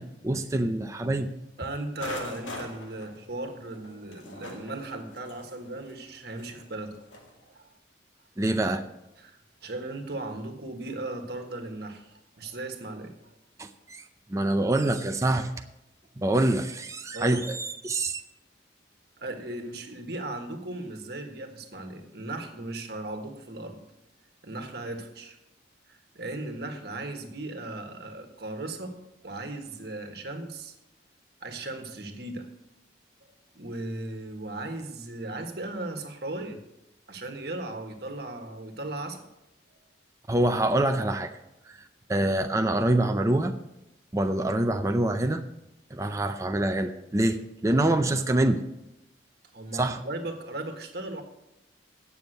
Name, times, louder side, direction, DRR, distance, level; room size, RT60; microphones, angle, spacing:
voice 1, 0.0-1.3 8.4-8.8 13.6-14.0 14.3-15.5 16.2-18.2 40.3-41.3 41.7-41.8 42.1-43.5 44.1-45.4 45.9-48.6 49.7-50.0, right 1 dB, 15° right, 6 dB, 0.5 m, -25 dB
voice 2, 1.6-6.9 7.4-7.7 9.2-13.1 17.1-17.4 19.2-23.8 24.4-25.4 25.9-28.9 29.2-30.7 31.4-32.5 33.5-36.6 37.1-39.2 49.5-51.2, right 2 dB, 55° right, 5 dB, 1.5 m, -37 dB
sound 1, 2.0-7.3, left 2 dB, 90° left, 2.5 m, -42 dB
9.5 x 7.0 x 7.9 m, 0.89 s
head